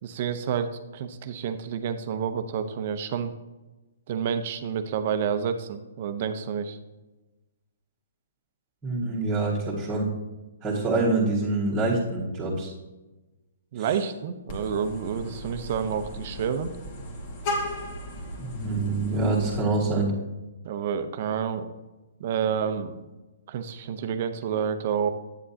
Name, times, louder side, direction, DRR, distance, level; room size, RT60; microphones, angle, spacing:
voice 1, 0.0-3.3 4.1-6.8 13.7-16.7 20.6-21.7 22.2-23.1 23.5-25.1, right 7 dB, 45° right, 10 dB, 0.7 m, -29 dB
voice 2, 8.8-10.1 10.6-12.7 13.8-13.9 18.4-20.1, right 3 dB, 15° right, -6 dB, 1.7 m, -26 dB
Vehicle horn car horn honking, 14.5-19.6, left 1 dB, 35° left, 1.7 m, -36 dB
9.0 x 7.5 x 2.8 m, 1.1 s
hypercardioid pair, 150°, 0 cm